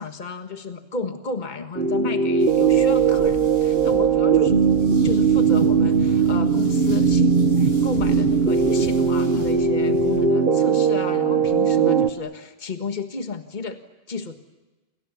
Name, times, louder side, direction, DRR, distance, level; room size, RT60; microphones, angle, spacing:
voice 1, 0.0-4.6 5.0-13.8 14.1-14.4, left 3 dB, 45° left, 7 dB, 1.8 m, -32 dB
sound 1, 1.8-12.1, right 6 dB, 55° right, 1.5 m, -19 dB
sound 2, 2.4-10.2, equal, 65° left, 8.2 m, -43 dB
29.5 x 28.0 x 7.2 m, 1.2 s
omnidirectional pair, 1.1 m